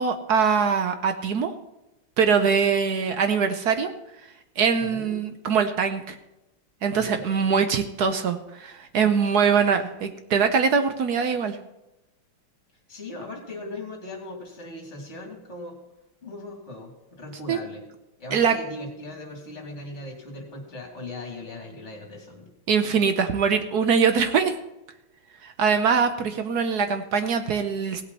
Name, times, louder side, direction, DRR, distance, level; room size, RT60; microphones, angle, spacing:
voice 1, 0.0-1.5 2.2-3.9 4.6-6.2 6.8-11.6 17.5-17.6 18.3-18.6 22.7-24.5 25.4-28.0, right 6 dB, 60° right, 8 dB, 1.1 m, -22 dB
voice 2, 4.8-5.2 6.9-7.6 12.9-15.8 16.2-17.8 18.2-22.5, left 2 dB, 35° left, 1 dB, 2.9 m, -39 dB
17.0 x 8.3 x 4.1 m, 0.94 s
omnidirectional pair, 2.3 m